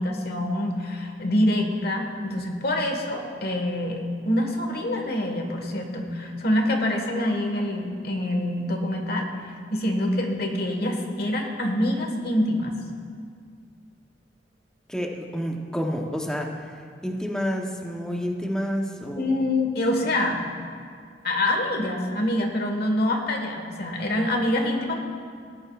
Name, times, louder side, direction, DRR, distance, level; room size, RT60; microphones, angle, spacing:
voice 1, 0.0-12.7 19.1-20.4 21.2-24.9, left 1 dB, 60° left, 2 dB, 1.4 m, -26 dB
voice 2, 14.9-16.7 17.0-19.4, equal, 5° left, 0 dB, 0.9 m, -29 dB
17.5 x 10.5 x 2.4 m, 2.2 s
head